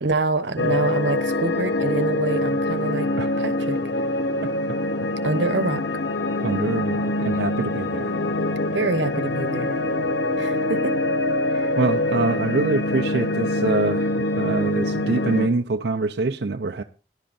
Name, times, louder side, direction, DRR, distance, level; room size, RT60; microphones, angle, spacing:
voice 1, 0.0-3.1 3.4-3.8 5.2-5.8 7.6-7.7 8.7-9.8 10.4-11.0 11.5-11.7, right 3 dB, 85° right, 1.0 m, -26 dB
sound 1, 0.6-15.5, left 2 dB, 80° left, 1.0 m, -24 dB
voice 2, 6.4-8.2 11.8-16.8, right 3 dB, 65° right, 0.5 m, -25 dB
19.0 x 11.5 x 2.5 m
head